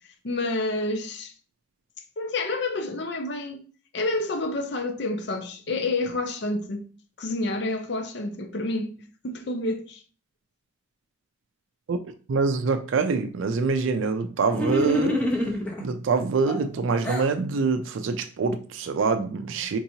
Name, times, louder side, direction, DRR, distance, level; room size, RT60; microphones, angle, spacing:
voice 1, 0.2-1.3 2.2-3.6 3.9-6.9 7.2-8.9 9.2-10.0, left 2 dB, 60° left, 0.5 m, -29 dB
voice 2, 12.3-15.2 15.8-19.8, right 4 dB, 85° right, 0.4 m, -25 dB
sound 1, 14.5-15.8 16.5-17.3, left 1 dB, 10° left, 0.7 m, -26 dB
4.5 x 2.8 x 2.7 m
head